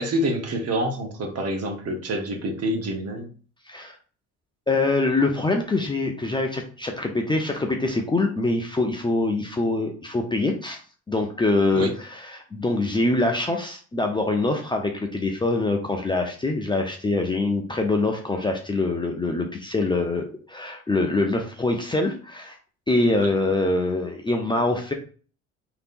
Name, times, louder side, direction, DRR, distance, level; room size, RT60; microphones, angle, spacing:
voice 1, 0.0-3.3 11.7-11.9 23.2-23.3, right 1 dB, 40° right, 3 dB, 1.0 m, -27 dB
voice 2, 3.7-4.0 4.7-10.8 11.1-22.6 22.9-24.9, left 2 dB, 15° left, 2 dB, 0.5 m, -24 dB
3.3 x 2.9 x 2.5 m, 0.40 s
hypercardioid pair, 60°, 36 cm